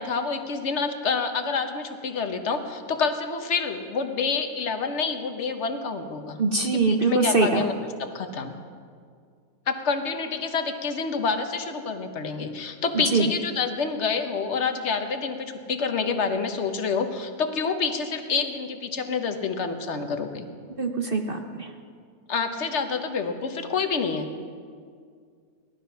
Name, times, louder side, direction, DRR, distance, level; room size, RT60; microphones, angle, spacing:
voice 1, 0.0-6.4 6.7-7.7 8.0-8.5 9.7-20.5 22.3-24.3, left 5 dB, 45° left, 6 dB, 1.2 m, -28 dB
voice 2, 6.4-7.6 12.9-13.3 20.8-21.7, right 3 dB, 45° right, 5 dB, 0.8 m, -23 dB
18.0 x 12.5 x 5.7 m, 2.1 s
omnidirectional pair, 1.8 m